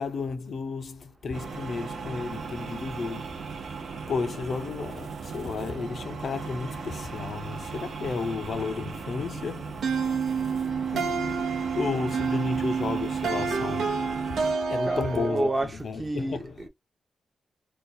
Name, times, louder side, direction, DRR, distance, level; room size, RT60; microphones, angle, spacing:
voice 1, 0.0-3.4 4.1-9.9 10.9-11.2 11.7-14.2 14.6-16.6, left 4 dB, 55° left, 0.5 m, -33 dB
sound 1, 1.3-14.5, right 4 dB, 60° right, 0.7 m, -37 dB
sound 2, 9.8-15.6, right 5 dB, 90° right, 0.8 m, -28 dB
voice 2, 14.8-16.7, right 2 dB, 20° right, 0.7 m, -30 dB
2.6 x 2.3 x 4.0 m
wide cardioid pair, 130°, 0 cm